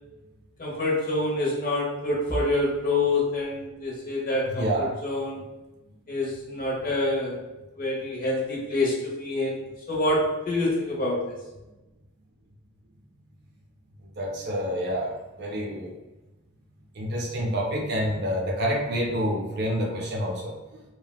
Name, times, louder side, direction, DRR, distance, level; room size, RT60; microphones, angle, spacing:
voice 1, 0.6-5.4 6.1-7.4 7.8-11.3, left 2 dB, 40° left, -4 dB, 0.8 m, -27 dB
voice 2, 4.6-4.9 14.2-15.9 17.0-20.5, equal, 45° right, -1 dB, 0.5 m, -28 dB
3.4 x 2.2 x 2.2 m, 1.0 s
head